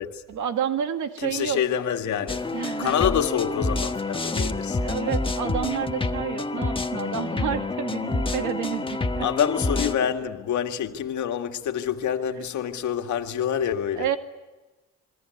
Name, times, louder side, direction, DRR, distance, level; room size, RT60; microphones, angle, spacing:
voice 1, 0.3-1.6 2.5-2.9 4.8-9.3 14.0-14.2, right 8 dB, 75° right, 2.3 m, -29 dB
voice 2, 1.2-2.4 2.8-4.8 9.2-14.1, left 9 dB, 70° left, 2.0 m, -27 dB
sound 1, 2.3-10.0, left 2 dB, 15° left, 1.4 m, -28 dB
27.0 x 22.5 x 9.5 m
cardioid pair, 90°, 30 cm